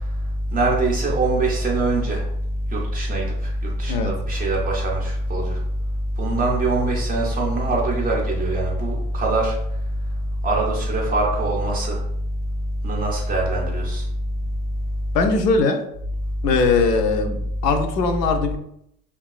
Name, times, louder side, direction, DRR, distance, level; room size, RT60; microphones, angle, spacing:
voice 1, 0.5-2.2 2.7-3.2 3.8-5.6 6.2-9.5 10.4-12.0 12.8-14.0, right 2 dB, 20° right, -2 dB, 0.4 m, -22 dB
voice 2, 15.1-15.8 16.4-18.6, left 4 dB, 75° left, 6 dB, 0.6 m, -20 dB
2.9 x 2.3 x 2.3 m, 0.75 s
hypercardioid pair, 85°, 48 cm